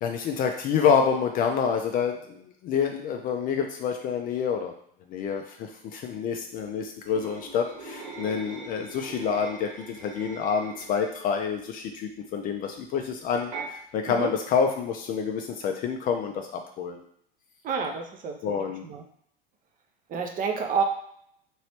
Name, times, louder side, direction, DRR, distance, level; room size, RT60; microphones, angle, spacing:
voice 1, 0.0-4.7 5.1-17.0 18.4-18.8, left 6 dB, 30° left, 4 dB, 0.4 m, -28 dB
sound 1, 7.1-11.3 13.3-13.7, right 3 dB, 60° right, 1.2 m, -41 dB
voice 2, 17.6-19.0 20.1-20.8, right 5 dB, 30° right, 4 dB, 0.5 m, -29 dB
3.0 x 3.0 x 2.9 m, 0.67 s
hypercardioid pair, 85°, 30 cm